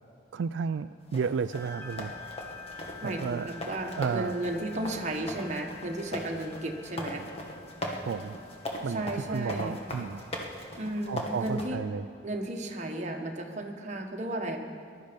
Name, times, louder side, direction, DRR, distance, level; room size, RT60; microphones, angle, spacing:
voice 1, 0.3-2.1 3.0-3.5 4.0-4.3 8.0-8.4 8.8-10.2 11.1-12.1, right 6 dB, 80° right, 10 dB, 0.3 m, -32 dB
sound 1, 1.1-11.7, left 1 dB, 35° left, 1.6 m, -38 dB
sound 2, 1.5-12.4, left 4 dB, 15° left, 1.6 m, -49 dB
voice 2, 3.0-7.3 8.9-9.8 10.8-11.8 12.2-14.6, right 1 dB, 40° right, 2 dB, 1.3 m, -34 dB
19.5 x 12.0 x 5.2 m, 2.3 s
head